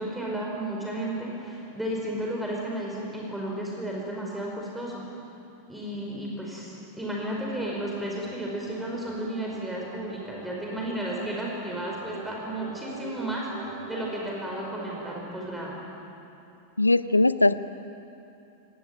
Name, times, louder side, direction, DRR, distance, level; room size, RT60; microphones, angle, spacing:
voice 1, 0.0-5.0 5.7-15.8, right 1 dB, 5° right, -3 dB, 5.0 m, -33 dB
sound 1, 7.3-15.2, right 4 dB, 55° right, 3.5 m, -43 dB
voice 2, 16.8-17.5, left 2 dB, 85° left, 15 dB, 0.7 m, -20 dB
24.0 x 19.0 x 9.5 m, 2.7 s
figure-of-eight pair, 90°, 0 cm